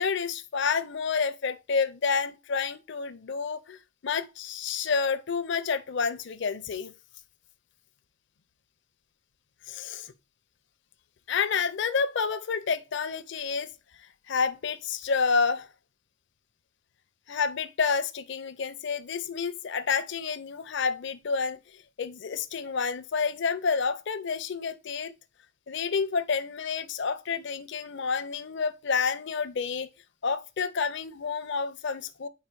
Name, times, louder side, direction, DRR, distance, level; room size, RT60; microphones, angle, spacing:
voice 1, 0.0-3.8 4.0-6.9 9.7-10.1 11.3-13.7 14.3-15.7 17.3-21.6 22.0-25.1 25.7-29.9 30.2-32.3, left 5 dB, 65° left, 0.6 m, -29 dB
4.7 x 4.5 x 4.5 m
head